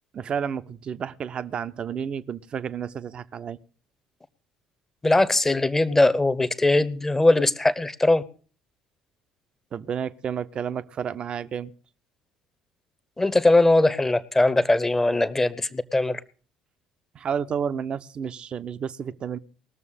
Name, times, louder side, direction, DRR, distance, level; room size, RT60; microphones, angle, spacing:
voice 1, 0.1-3.6 9.7-11.7 17.1-19.4, right 7 dB, 40° right, 0.7 m, -31 dB
voice 2, 5.0-8.2 13.2-16.2, left 2 dB, 15° left, 0.9 m, -20 dB
20.0 x 7.0 x 6.6 m
figure-of-eight pair, 55°, 3 cm